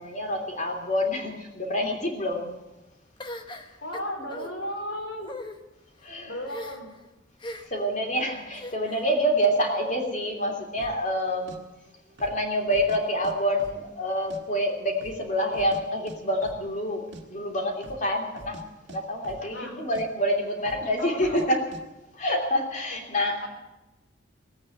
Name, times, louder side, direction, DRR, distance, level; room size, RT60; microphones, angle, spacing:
voice 1, 0.0-2.5 6.0-6.4 7.6-11.6 12.2-18.6 18.9-21.6 22.1-23.5, equal, 40° left, 2 dB, 3.0 m, -27 dB
sound 1, 3.2-4.5 5.2-5.6 6.5-7.0 7.4-7.8 8.5-9.1, left 1 dB, 25° left, 1.1 m, -39 dB
voice 2, 3.8-5.3 6.2-6.9 19.4-19.7 21.0-21.5, equal, 90° left, 1 dB, 4.6 m, -35 dB
sound 2, 10.8-11.0 11.5-11.6 12.1-12.4 12.7-13.3 13.6-14.4 14.7-14.8 15.0-16.2 16.4-16.6 16.9-17.2 17.7-18.1 18.3-18.6 18.9-19.7 19.9-20.1 20.6-20.9 21.2-21.5 21.7-21.8, right 1 dB, 70° right, 1.8 m, -44 dB
18.0 x 8.8 x 9.1 m, 1.0 s
head